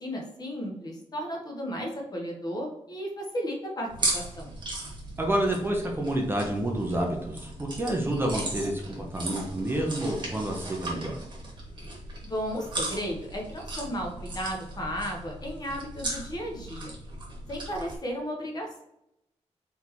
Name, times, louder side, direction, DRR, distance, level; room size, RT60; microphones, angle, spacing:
voice 1, 0.0-4.6 12.2-16.9 17.5-18.8, equal, 35° left, 0 dB, 1.0 m, -34 dB
sound 1, 3.9-18.0, right 2 dB, 40° right, 1.3 m, -37 dB
voice 2, 5.2-11.2, right 1 dB, 20° right, 0 dB, 0.7 m, -29 dB
4.1 x 3.4 x 2.9 m, 0.84 s
wide cardioid pair, 155°, 12 cm